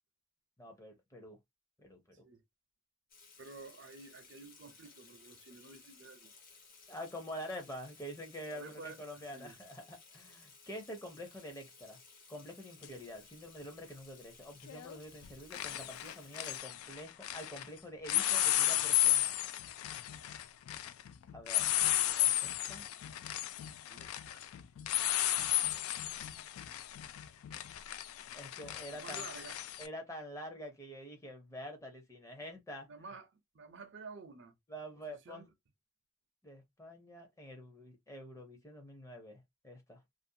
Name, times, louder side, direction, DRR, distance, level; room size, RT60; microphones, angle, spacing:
voice 1, 0.6-1.4 1.8-2.2 6.9-12.0 12.3-19.2 21.3-21.6 22.0-22.8 28.3-29.3 29.8-32.9 34.7-35.5 36.4-40.0, equal, 15° left, 0.6 m, -47 dB
Water tap faucet / Sink (filling or washing), 3.1-16.6, left 4 dB, 45° left, 0.8 m, -59 dB
voice 2, 3.4-6.3 8.5-9.0 9.3-9.6 23.9-24.4 27.5-27.6 28.9-29.6 32.9-34.5 35.0-35.5, right 4 dB, 55° right, 0.5 m, -51 dB
sound 1, 12.8-12.9 14.7-15.0 15.2-17.7 18.0-29.9, left 13 dB, 90° left, 0.3 m, -34 dB
2.5 x 2.1 x 2.6 m
head